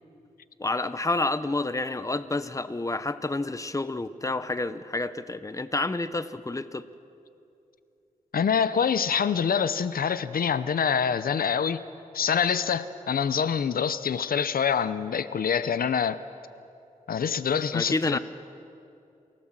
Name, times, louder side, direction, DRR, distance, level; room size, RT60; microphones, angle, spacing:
voice 1, 0.6-6.9 17.7-18.2, left 2 dB, 20° left, 13 dB, 0.9 m, -29 dB
voice 2, 8.3-11.8 12.1-16.2 17.1-18.2, left 7 dB, 80° left, 14 dB, 0.6 m, -25 dB
27.5 x 16.0 x 7.5 m, 2.6 s
wide cardioid pair, 80°, 15 cm